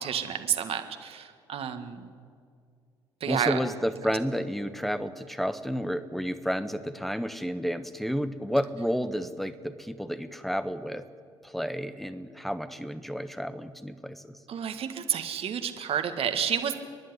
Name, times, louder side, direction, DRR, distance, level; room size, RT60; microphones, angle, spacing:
voice 1, 0.0-2.1 3.2-3.6 14.5-16.7, right 8 dB, 50° right, 8 dB, 1.8 m, -30 dB
voice 2, 3.3-11.1 11.4-14.4, equal, ahead, 12 dB, 1.3 m, -31 dB
30.0 x 11.0 x 9.7 m, 2.3 s
figure-of-eight pair, 55°, 13 cm